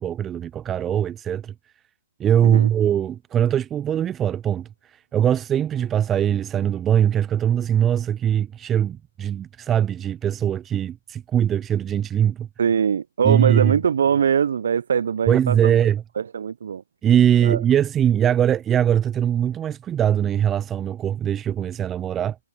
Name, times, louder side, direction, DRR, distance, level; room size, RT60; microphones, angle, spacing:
voice 1, 0.0-1.5 2.2-12.5 13.2-13.7 15.3-16.0 17.0-22.4, right 9 dB, 15° right, 0.5 m, -21 dB
voice 2, 12.6-15.8 16.2-16.8 17.4-17.6, right 7 dB, 60° right, 0.7 m, -22 dB
figure-of-eight pair, 130°, 0 cm